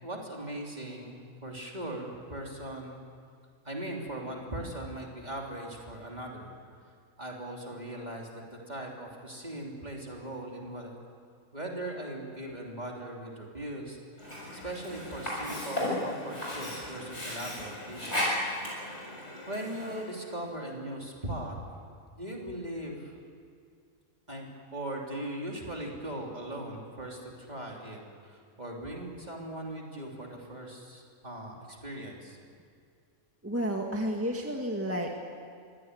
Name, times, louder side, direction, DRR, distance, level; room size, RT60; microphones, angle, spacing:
voice 1, 0.0-3.0 3.6-6.5 7.2-10.9 11.5-14.0 14.5-18.3 19.4-21.6 22.2-23.2 24.3-24.5 24.7-32.4, right 1 dB, 30° right, -1 dB, 3.3 m, -39 dB
Sink (filling or washing), 14.2-20.1, left 1 dB, 50° left, 7.3 m, -35 dB
voice 2, 33.4-35.1, equal, 10° right, 1 dB, 1.8 m, -31 dB
24.0 x 17.0 x 9.5 m, 2.3 s
omnidirectional pair, 1.5 m